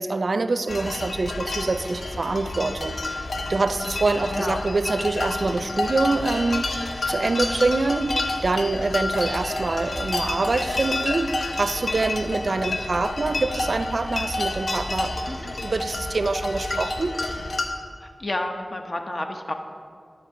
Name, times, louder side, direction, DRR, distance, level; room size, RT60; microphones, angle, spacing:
voice 1, 0.0-3.2 3.5-6.7 7.1-8.1 8.4-15.1 15.4-17.2, right 3 dB, 70° right, 11 dB, 0.4 m, -25 dB
sound 1, 0.7-17.7, left 2 dB, 85° left, 0.8 m, -29 dB
voice 2, 18.0-19.5, left 1 dB, 45° left, 4 dB, 0.8 m, -30 dB
10.5 x 4.5 x 6.8 m, 2.2 s
wide cardioid pair, 65°, 0 cm